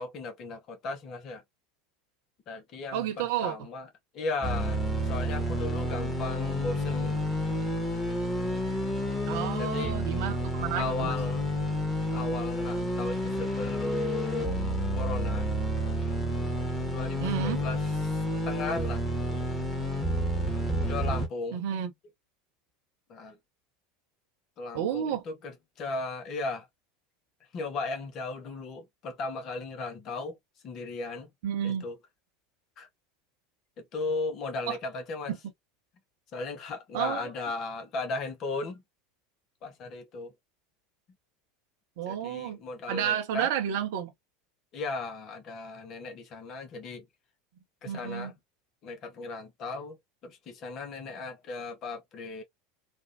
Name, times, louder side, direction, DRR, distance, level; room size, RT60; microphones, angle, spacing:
voice 1, 0.0-1.4 2.5-7.2 9.2-10.0 10.7-11.5 12.1-15.5 16.9-19.0 19.3-19.5 20.9-21.9 23.1-23.4 24.6-26.7 27.5-30.4 30.6-31.3 31.6-32.0 32.8-32.9 33.8-35.3 36.3-38.8 39.6-40.3 42.1-43.5 44.7-47.0 47.8-48.3 48.8-50.0 50.2-52.4, left 3 dB, 40° left, 1.0 m, -36 dB
voice 2, 2.9-3.6 9.3-11.1 17.2-17.6 21.5-21.9 24.7-25.2 31.4-31.8 34.7-34.8 36.9-37.2 42.0-42.6 42.9-44.1 47.8-48.3, right 9 dB, 55° right, 0.9 m, -31 dB
sound 1, 4.4-21.3, equal, 10° left, 1.5 m, -30 dB
3.4 x 2.4 x 2.6 m
figure-of-eight pair, 75°, 0 cm